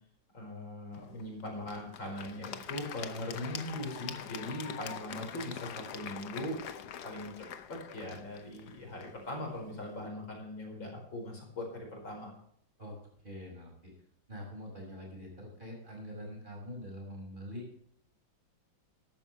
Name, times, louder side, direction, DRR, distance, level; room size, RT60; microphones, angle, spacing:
voice 1, 0.3-6.6 7.0-11.6 11.9-12.3, left 1 dB, 80° left, 0 dB, 5.6 m, -40 dB
Applause / Crowd, 0.9-10.0, left 9 dB, 65° left, 1.3 m, -45 dB
voice 2, 13.2-13.9 14.3-17.7, equal, 25° right, -1 dB, 5.8 m, -44 dB
14.5 x 12.0 x 3.2 m, 0.67 s
omnidirectional pair, 2.1 m